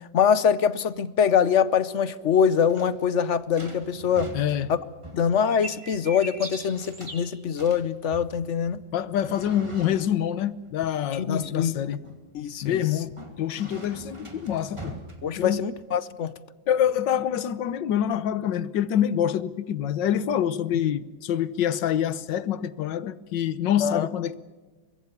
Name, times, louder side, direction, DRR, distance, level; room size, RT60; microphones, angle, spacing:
voice 1, 0.1-4.3 4.7-4.8 5.1-8.8 11.1-11.7 12.3-12.8 15.2-16.3 20.8-20.9 23.8-24.1, left 7 dB, 50° left, 0.9 m, -23 dB
sound 1, 2.3-15.9, right 1 dB, 15° right, 2.6 m, -45 dB
voice 2, 4.3-4.7 8.9-12.0 12.6-15.0 15.4-15.6 16.7-24.3, left 10 dB, 70° left, 1.6 m, -26 dB
sound 2, 5.5-7.3, right 2 dB, 85° right, 7.3 m, -38 dB
24.0 x 22.0 x 7.2 m
omnidirectional pair, 2.0 m